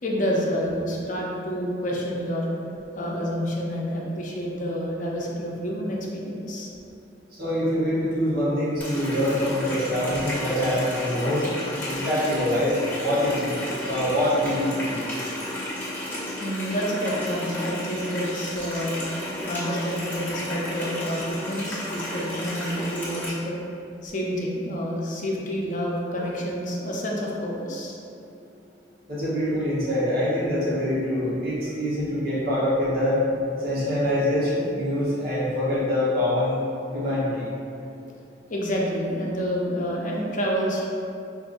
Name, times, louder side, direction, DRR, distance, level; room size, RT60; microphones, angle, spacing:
voice 1, 0.0-2.5 2.9-6.7 9.9-10.0 16.4-19.0 19.4-23.6 24.0-28.0 38.5-40.8, equal, 45° left, -3 dB, 0.6 m, -28 dB
voice 2, 7.3-11.4 11.9-12.7 13.0-13.6 13.8-15.0 29.1-33.2 33.6-36.6 36.9-37.5, left 1 dB, 55° right, -9 dB, 1.2 m, -24 dB
Water tap faucet, 8.8-23.3, left 1 dB, 10° left, 1.0 m, -32 dB
5.2 x 2.6 x 2.5 m, 2.6 s
head